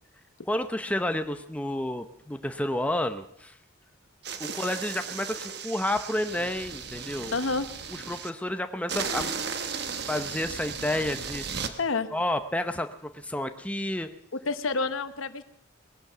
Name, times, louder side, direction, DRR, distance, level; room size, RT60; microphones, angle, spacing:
voice 1, 0.5-3.6 4.4-7.4 7.9-9.3 10.1-11.6 12.1-14.1, left 1 dB, 5° left, 8 dB, 0.7 m, -30 dB
sound 1, 4.2-8.3 8.9-11.7, right 6 dB, 55° right, 1.1 m, -35 dB
voice 2, 7.3-7.7 11.8-12.1 14.4-15.4, left 3 dB, 85° left, 11 dB, 1.1 m, -28 dB
19.0 x 11.0 x 6.9 m, 0.74 s
head